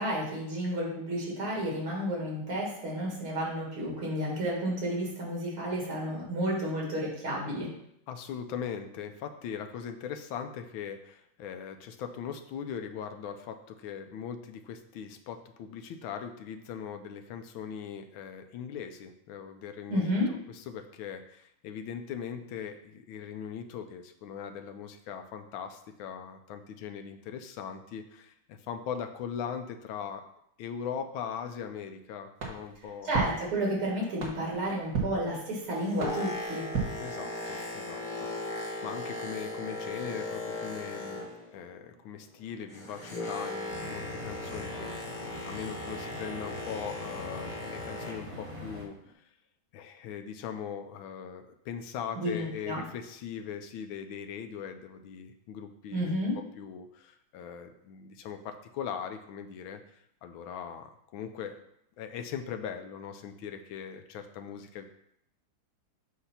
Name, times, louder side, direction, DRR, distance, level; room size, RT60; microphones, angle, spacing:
voice 1, 0.0-7.7 19.9-20.3 33.0-36.7 52.2-52.8 55.9-56.3, equal, 80° right, -3 dB, 2.9 m, -31 dB
voice 2, 8.1-20.2 20.5-30.2 30.6-33.1 37.0-41.3 41.5-49.2 49.7-56.2 56.6-61.6 62.0-64.9, left 7 dB, 75° left, 7 dB, 1.4 m, -40 dB
sound 1, 32.4-37.7, right 5 dB, 45° right, 1.5 m, -37 dB
Boat Water vehicle, 35.5-41.6 41.9-48.4 49.0-49.1, left 2 dB, 25° left, 1.1 m, -38 dB
sound 2, 43.7-48.8, equal, 20° right, 0.8 m, -43 dB
8.0 x 2.8 x 5.7 m, 0.75 s
omnidirectional pair, 2.3 m